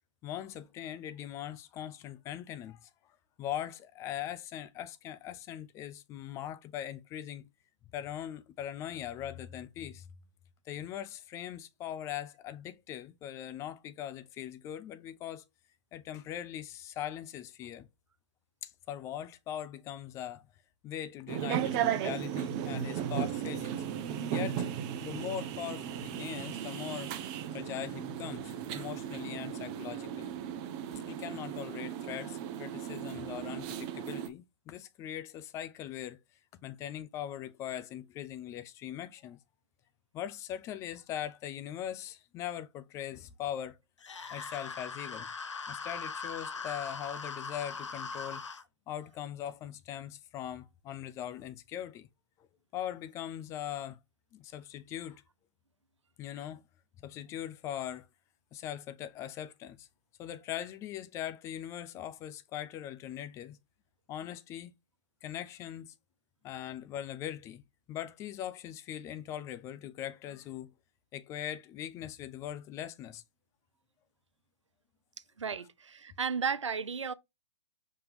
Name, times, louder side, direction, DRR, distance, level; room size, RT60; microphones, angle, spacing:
voice 1, 0.2-2.9 3.4-7.5 7.9-10.1 10.7-15.4 15.9-17.9 18.6-20.5 20.8-23.8 24.3-24.7 25.0-27.1 27.5-30.3 31.1-36.2 36.6-39.4 40.1-43.8 44.3-45.3 45.7-48.4 48.9-52.1 52.7-54.0 54.3-55.2 56.2-56.6 57.0-58.1 58.5-59.9 60.2-63.6 64.1-64.7 65.2-65.9 66.4-67.6 67.9-70.7 71.1-73.2, left 11 dB, 20° left, 0.4 m, -41 dB
sound 1, 21.3-34.3, right 9 dB, 30° right, 0.7 m, -36 dB
sound 2, 44.0-48.6, left 4 dB, 80° left, 0.8 m, -40 dB
voice 2, 75.4-77.1, right 6 dB, 85° right, 0.6 m, -34 dB
5.2 x 2.8 x 3.3 m
hypercardioid pair, 125°, 15 cm